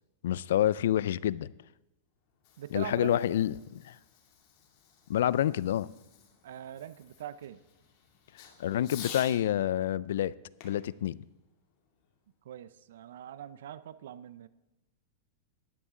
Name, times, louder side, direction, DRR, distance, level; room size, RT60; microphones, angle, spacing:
voice 1, 0.2-1.5 2.7-3.9 5.1-5.9 8.6-10.3 10.6-11.2, left 11 dB, 80° left, 21 dB, 0.3 m, -28 dB
Fireworks, 2.2-9.4 10.6-12.2, left 7 dB, 50° left, 2.5 m, -51 dB
voice 2, 2.6-3.2 6.4-7.6 12.4-14.5, right 10 dB, 80° right, 16 dB, 0.5 m, -42 dB
12.5 x 11.0 x 3.7 m, 0.99 s
supercardioid pair, 135°, 0 cm